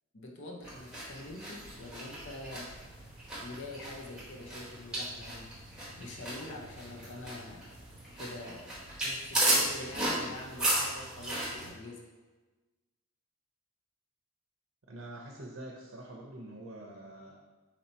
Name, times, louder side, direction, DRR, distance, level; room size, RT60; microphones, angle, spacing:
voice 1, 0.1-2.7 3.4-5.6 6.0-7.7 8.2-12.1, left 2 dB, 55° left, 0 dB, 0.7 m, -45 dB
sound 1, 0.6-11.7, right 1 dB, 5° right, 0.9 m, -35 dB
voice 2, 14.9-17.4, right 1 dB, 60° right, -1 dB, 0.6 m, -45 dB
4.3 x 2.8 x 4.3 m, 1.2 s
head